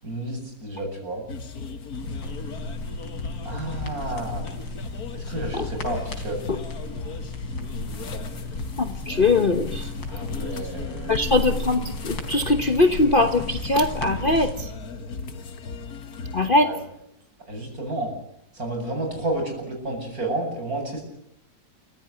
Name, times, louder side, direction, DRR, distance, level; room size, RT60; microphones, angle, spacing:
voice 1, 0.0-1.2 3.4-4.5 5.1-6.4 10.1-11.3 16.5-16.8 17.5-18.2 18.5-21.0, right 2 dB, 50° right, 2 dB, 8.7 m, -31 dB
sound 1, 1.3-16.5, left 4 dB, 55° left, 2.0 m, -36 dB
sound 2, 1.9-14.5, left 2 dB, 85° left, 4.5 m, -35 dB
voice 2, 8.8-9.9 11.1-14.7 16.3-16.7, left 2 dB, 35° left, 7 dB, 1.2 m, -21 dB
28.0 x 16.5 x 9.7 m, 0.75 s
omnidirectional pair, 2.0 m